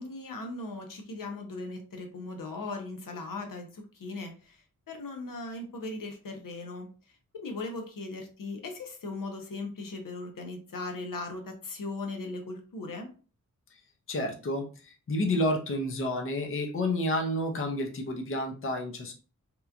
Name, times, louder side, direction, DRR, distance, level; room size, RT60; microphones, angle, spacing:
voice 1, 0.0-6.9 7.4-13.1, left 3 dB, 80° left, 3 dB, 0.7 m, -38 dB
voice 2, 14.1-19.1, left 1 dB, 40° left, 2 dB, 0.5 m, -30 dB
2.9 x 2.2 x 2.4 m, 0.36 s
wide cardioid pair, 100°, 33 cm